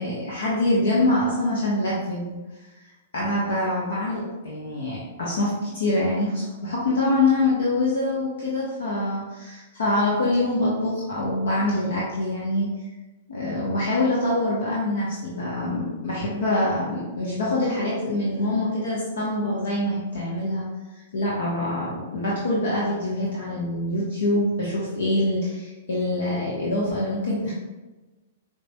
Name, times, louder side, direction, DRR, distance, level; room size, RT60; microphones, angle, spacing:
voice 1, 0.0-2.3 3.1-9.2 9.8-12.7 13.3-20.7 21.1-27.5, left 2 dB, 65° left, -6 dB, 0.9 m, -25 dB
5.0 x 2.9 x 2.2 m, 1.1 s
figure-of-eight pair, 105°, 0 cm